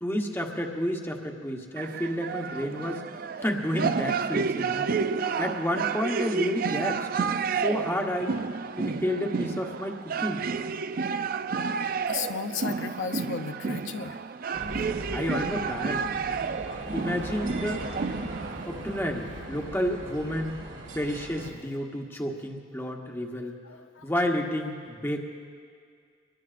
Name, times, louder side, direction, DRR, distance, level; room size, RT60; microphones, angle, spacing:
voice 1, 0.0-3.0 3.4-4.9 5.4-7.1 7.6-8.4 8.8-10.4 15.1-16.0 16.9-17.8 18.7-20.6 20.9-23.5 24.0-25.2, equal, 10° left, 1 dB, 1.1 m, -30 dB
sound 1, 1.8-18.7, right 5 dB, 45° right, 0.4 m, -30 dB
voice 2, 12.1-14.2 23.6-24.1, left 6 dB, 80° left, 8 dB, 0.6 m, -34 dB
sound 2, 14.5-21.5, right 1 dB, 75° right, 2.1 m, -39 dB
25.5 x 22.0 x 2.5 m, 2.2 s
head